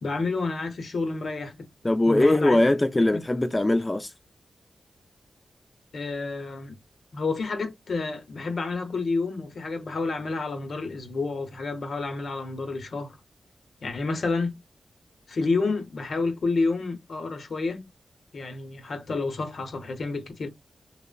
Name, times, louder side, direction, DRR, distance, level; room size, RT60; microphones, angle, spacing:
voice 1, 0.0-1.7 2.1-2.6 3.1-3.2 5.9-6.8 7.1-13.2 13.8-14.6 15.3-17.9 18.3-20.5, left 3 dB, 70° left, 0.7 m, -29 dB
voice 2, 1.8-4.1, left 1 dB, 25° left, 0.4 m, -21 dB
2.9 x 2.0 x 2.3 m
supercardioid pair, 40°, 0 cm